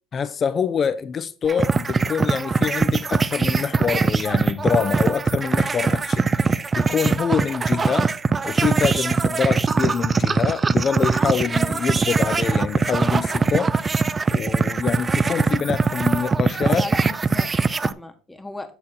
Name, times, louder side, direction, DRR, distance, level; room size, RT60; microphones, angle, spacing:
voice 1, 0.1-8.1 8.4-13.7 14.3-16.9, left 7 dB, 35° left, 0.5 m, -25 dB
sound 1, 1.4-17.9, right 4 dB, 25° right, 0.4 m, -21 dB
voice 2, 16.7-18.8, left 2 dB, 5° left, 1.1 m, -36 dB
8.7 x 4.3 x 4.2 m
supercardioid pair, 110°, 0 cm